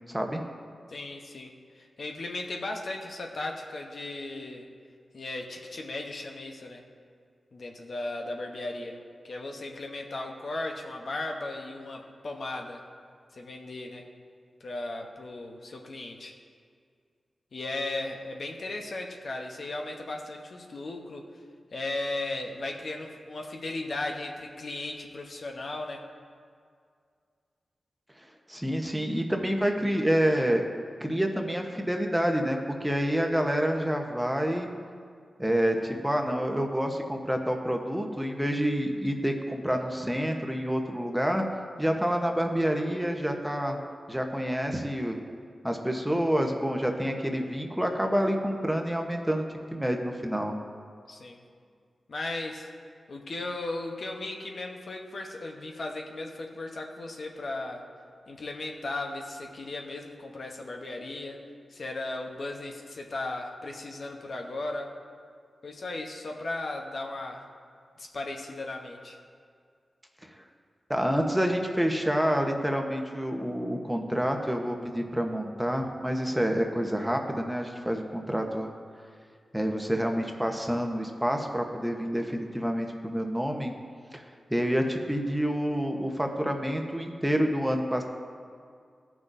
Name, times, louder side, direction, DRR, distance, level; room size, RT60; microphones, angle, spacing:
voice 1, 0.1-0.4 28.5-30.7 31.0-34.7 35.4-41.4 41.8-43.8 44.1-45.2 45.6-49.5 49.7-50.6 70.9-78.7 79.5-83.7 84.1-84.2 84.5-88.0, equal, 5° right, 3 dB, 0.9 m, -28 dB
voice 2, 0.9-4.7 5.1-6.8 7.5-9.0 9.2-12.8 13.3-14.0 14.6-16.3 17.5-21.3 21.7-26.0 51.1-51.4 52.1-52.7 53.1-57.8 58.3-61.4 61.7-64.9 65.6-67.5 68.0-69.2, left 2 dB, 65° left, 2 dB, 0.9 m, -36 dB
14.5 x 6.1 x 2.7 m, 2.2 s
cardioid pair, 55°, 0 cm